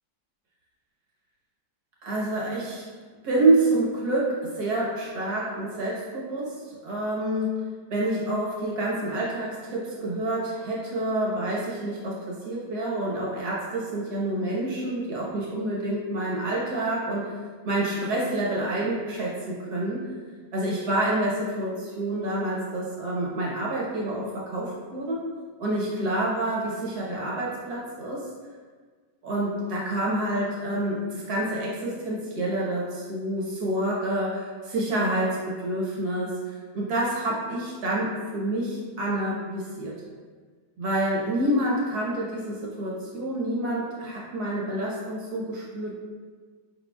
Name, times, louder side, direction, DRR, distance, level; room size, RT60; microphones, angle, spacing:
voice 1, 2.0-2.9 3.2-7.6 7.9-17.3 17.6-20.0 20.5-25.2 25.6-28.2 29.2-39.9 40.8-45.9, right 1 dB, 65° right, -5 dB, 1.6 m, -28 dB
5.2 x 4.3 x 2.3 m, 1.5 s
omnidirectional pair, 1.9 m